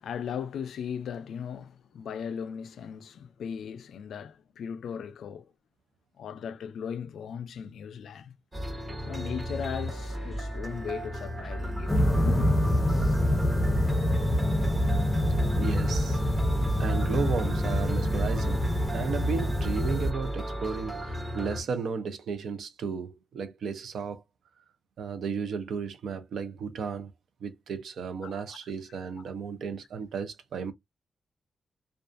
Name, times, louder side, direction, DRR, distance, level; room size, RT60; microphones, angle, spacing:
voice 1, 0.0-5.5 6.2-8.3 9.0-12.5 28.2-28.6 29.2-29.3, left 7 dB, 90° left, 0.3 m, -37 dB
sound 1, 8.5-21.6, equal, 25° right, 0.8 m, -35 dB
sound 2, 11.9-20.1, left 1 dB, 10° left, 0.6 m, -26 dB
voice 2, 15.6-16.2 16.8-18.6 18.9-24.2 25.0-27.1 27.4-30.7, right 5 dB, 80° right, 0.5 m, -34 dB
2.4 x 2.3 x 2.4 m
wide cardioid pair, 140°, 0 cm